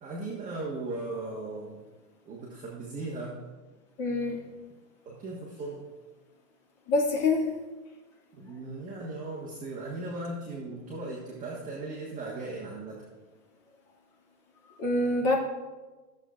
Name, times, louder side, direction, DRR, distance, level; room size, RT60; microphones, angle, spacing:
voice 1, 0.0-1.8 2.2-3.4 5.0-5.9 8.4-13.0, right 2 dB, 15° right, -5 dB, 1.4 m, -37 dB
voice 2, 4.0-4.4 6.9-7.5 14.8-15.3, left 2 dB, 40° left, -2 dB, 2.3 m, -25 dB
14.5 x 7.3 x 2.5 m, 1.2 s
hypercardioid pair, 145°, 48 cm